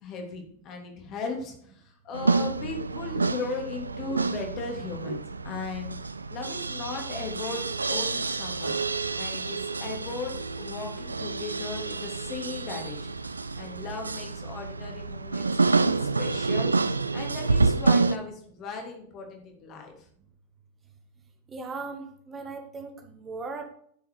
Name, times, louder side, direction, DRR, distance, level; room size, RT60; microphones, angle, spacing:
voice 1, 0.0-5.9 6.3-7.6 7.9-8.8 9.2-13.1 13.6-19.9, left 4 dB, 35° left, 2 dB, 2.9 m, -37 dB
sound 1, 2.1-18.2, right 3 dB, 80° right, 0.5 m, -28 dB
voice 2, 21.5-23.6, right 4 dB, 20° right, 5 dB, 1.4 m, -38 dB
11.5 x 6.9 x 4.8 m, 0.63 s
figure-of-eight pair, 90°, 0 cm